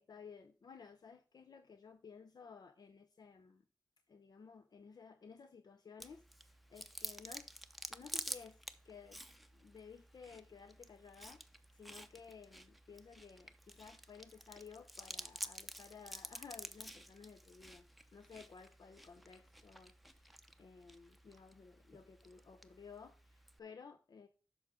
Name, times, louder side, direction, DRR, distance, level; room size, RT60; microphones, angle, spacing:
voice 1, 0.0-3.6 4.1-7.5 7.9-9.2 9.5-17.9 18.1-24.3, left 5 dB, 75° left, 0.5 m, -56 dB
Chewing mastication, 6.0-23.6, equal, ahead, 0.6 m, -51 dB
10.0 x 6.1 x 3.7 m
cardioid pair, 40°, 7 cm